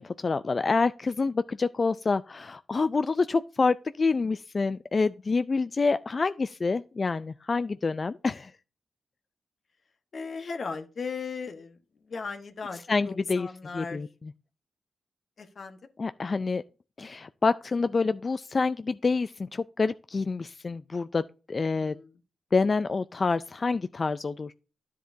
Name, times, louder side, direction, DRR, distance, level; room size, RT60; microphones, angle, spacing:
voice 1, 0.0-8.5 12.9-13.5 13.7-14.3 16.0-16.6 17.0-21.2 21.5-21.9 22.5-24.5, left 4 dB, 40° left, 0.3 m, -27 dB
voice 2, 10.1-11.8 12.1-12.8 13.0-14.0 15.4-15.8 21.7-22.1, left 5 dB, 60° left, 1.2 m, -37 dB
10.5 x 7.4 x 2.7 m
cardioid pair, 80°, 0 cm